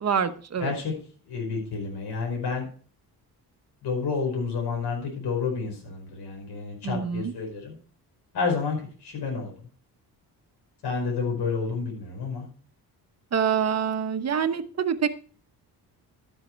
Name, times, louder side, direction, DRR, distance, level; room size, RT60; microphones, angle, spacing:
voice 1, 0.0-0.7 6.8-7.3 13.3-15.1, right 7 dB, 40° right, 8 dB, 1.1 m, -26 dB
voice 2, 0.6-0.9 1.3-2.7 3.8-7.8 8.3-9.5 10.8-12.5, left 5 dB, 75° left, 0 dB, 5.1 m, -30 dB
12.5 x 7.8 x 4.6 m, 0.41 s
cardioid pair, 125°, 39 cm